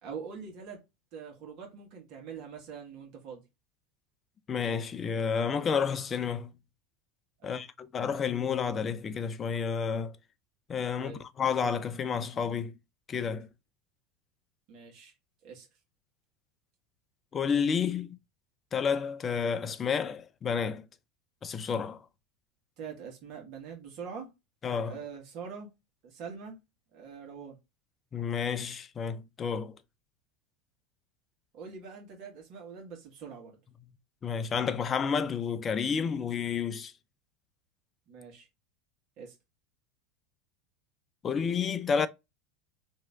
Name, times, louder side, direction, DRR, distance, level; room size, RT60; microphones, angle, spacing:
voice 1, 0.0-0.8 1.1-3.4 7.4-7.6 11.0-11.2 14.7-15.1 15.4-15.7 22.8-24.3 24.8-25.7 26.0-26.6 26.9-27.6 31.5-33.6 38.1-38.5 39.2-39.3, right 6 dB, 55° right, 1.6 m, -44 dB
voice 2, 4.5-6.5 7.4-10.2 10.7-12.7 13.1-13.5 17.3-18.2 18.7-20.9 21.4-22.1 24.6-25.0 28.1-29.8 34.2-36.9 41.2-42.1, left 6 dB, 30° left, 0.5 m, -30 dB
3.1 x 2.8 x 3.4 m
hypercardioid pair, 85°, 0 cm